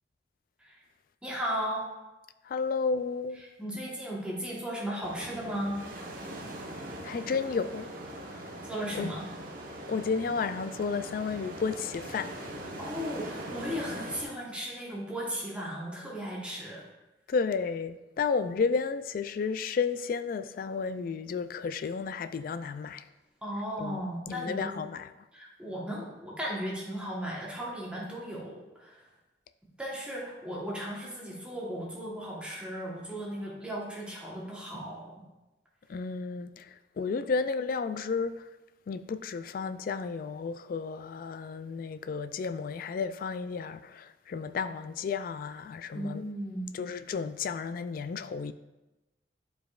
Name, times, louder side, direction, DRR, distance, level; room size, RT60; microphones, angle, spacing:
voice 1, 1.2-1.8 3.6-5.8 8.6-9.2 12.8-16.9 23.4-24.7 25.3-29.1 29.8-35.1 45.9-46.7, equal, 5° right, 1.2 m, -36 dB
voice 2, 2.4-3.4 7.0-7.9 8.3-8.5 8.9-9.1 9.9-12.5 17.3-23.1 23.8-25.1 35.9-38.5 38.9-46.2 46.7-48.5, left 5 dB, 50° left, 0.3 m, -32 dB
sound 1, 5.0-14.2, right 1 dB, 50° right, 1.2 m, -41 dB
11.0 x 4.8 x 2.4 m
head